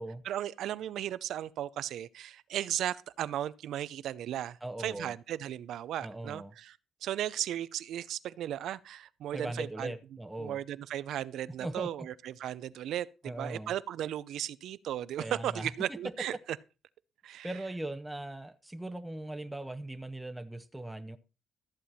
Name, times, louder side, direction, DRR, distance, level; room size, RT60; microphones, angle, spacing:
voice 1, 0.2-9.9 10.4-16.4 17.2-17.5, right 11 dB, 75° right, 0.6 m, -36 dB
voice 2, 4.6-5.1 6.0-6.5 9.3-10.6 11.6-12.1 13.2-13.7 15.2-16.1 17.4-21.2, right 1 dB, 10° right, 0.8 m, -39 dB
14.0 x 7.7 x 4.2 m
cardioid pair, 90°, 0 cm